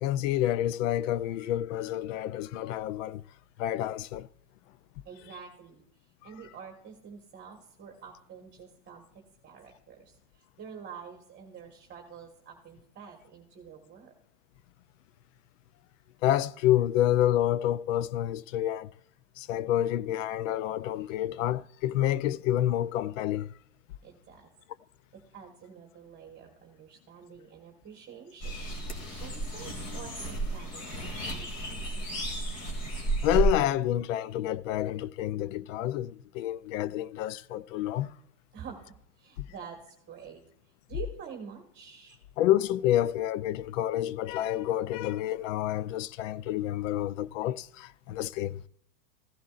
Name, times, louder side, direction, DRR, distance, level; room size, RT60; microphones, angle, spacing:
voice 1, 0.0-3.2 3.6-4.3 6.2-6.3 16.2-18.9 19.4-23.5 32.8-32.9 33.2-38.2 39.4-39.5 42.4-48.6, left 12 dB, 55° left, 0.5 m, -28 dB
voice 2, 5.0-5.8 6.2-9.0 9.4-14.1 24.0-24.5 25.1-28.7 29.1-31.5 31.8-32.2 38.5-40.4 40.9-42.2, right 7 dB, 20° right, 1.6 m, -47 dB
sound 1, 28.4-33.5, right 2 dB, 30° left, 2.6 m, -32 dB
16.0 x 11.0 x 2.5 m
supercardioid pair, 130°, 47 cm